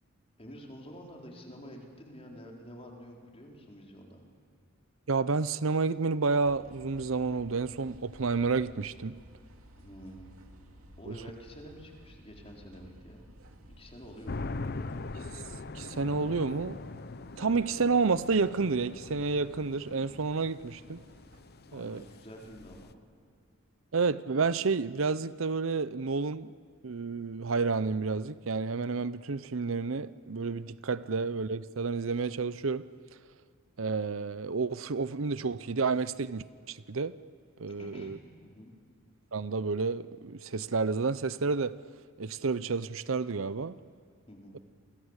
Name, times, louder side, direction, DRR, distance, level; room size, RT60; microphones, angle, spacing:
voice 1, 0.4-4.2 9.7-10.4 11.0-13.2 13.8-14.7 21.7-22.9 37.7-38.7 44.3-44.6, equal, 30° left, 4.3 m, -48 dB
voice 2, 5.1-9.2 11.1-11.2 15.3-15.4 15.7-16.8 17.4-21.0 21.7-22.0 23.9-26.5 26.8-32.9 33.8-37.1 37.6-38.2 39.3-41.7 42.2-43.7, right 4 dB, 70° right, 0.7 m, -30 dB
sound 1, 6.4-22.1, right 1 dB, 85° right, 2.7 m, -56 dB
sound 2, 14.3-22.9, left 3 dB, 50° left, 0.8 m, -42 dB
29.0 x 25.0 x 8.2 m
head